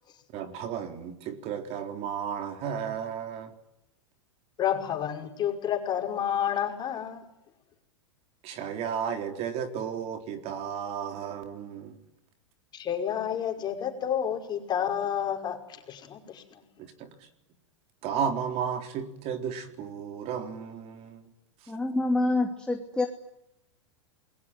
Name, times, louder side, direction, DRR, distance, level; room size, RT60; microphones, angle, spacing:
voice 1, 0.3-3.5 8.4-12.0 16.8-17.3 18.0-21.2 21.6-21.7, right 7 dB, 40° right, 3.9 m, -33 dB
voice 2, 4.6-7.3 12.7-15.6 15.9-16.6, left 9 dB, 25° left, 5.6 m, -30 dB
voice 3, 21.7-23.1, left 2 dB, 5° left, 3.0 m, -26 dB
29.5 x 22.0 x 9.1 m
hypercardioid pair, 125°, 16 cm